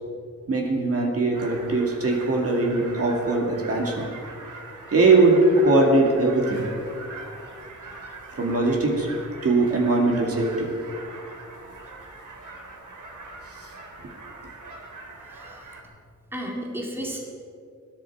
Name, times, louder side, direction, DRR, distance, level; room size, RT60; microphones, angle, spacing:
voice 1, 0.5-4.0 4.9-6.7 8.3-9.1 9.4-10.7, right 2 dB, 50° right, 0 dB, 2.3 m, -21 dB
sound 1, 1.3-15.8, right 3 dB, 85° right, 2.5 m, -42 dB
voice 2, 15.3-15.7 16.3-17.2, equal, 5° right, -1 dB, 2.0 m, -33 dB
21.0 x 10.5 x 4.8 m, 2.4 s
wide cardioid pair, 155°, 30 cm